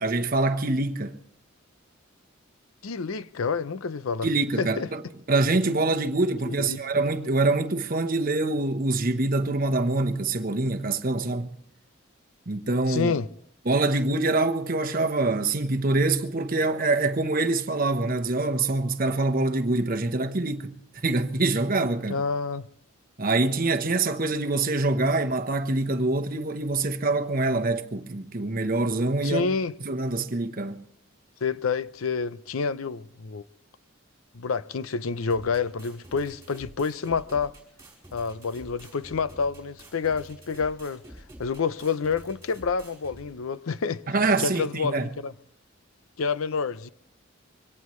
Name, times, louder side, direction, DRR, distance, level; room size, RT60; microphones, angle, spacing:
voice 1, 0.0-1.2 4.2-5.0 5.3-11.6 12.5-13.1 13.7-22.2 23.2-29.5 29.8-30.8 44.1-45.1, right 2 dB, 45° right, 1.0 m, -25 dB
voice 2, 2.8-4.3 4.6-4.9 6.5-6.8 12.9-13.3 22.1-22.7 29.2-29.7 31.4-33.4 34.3-37.5 38.1-41.0 41.4-44.0 44.4-45.3 46.2-46.9, left 5 dB, 80° left, 0.6 m, -28 dB
sound 1, 35.3-43.3, right 1 dB, 15° right, 4.6 m, -48 dB
24.0 x 17.5 x 3.2 m
head